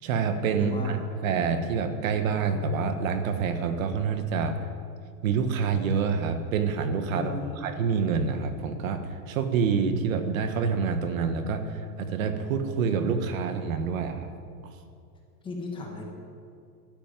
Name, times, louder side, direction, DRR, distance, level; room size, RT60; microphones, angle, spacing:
voice 1, 0.0-4.6 5.2-14.3, right 5 dB, 55° right, 8 dB, 1.4 m, -27 dB
voice 2, 0.6-1.0 7.1-7.7 15.4-16.0, left 4 dB, 10° left, 0 dB, 1.3 m, -36 dB
12.5 x 10.5 x 9.2 m, 2.4 s
supercardioid pair, 175°, 49 cm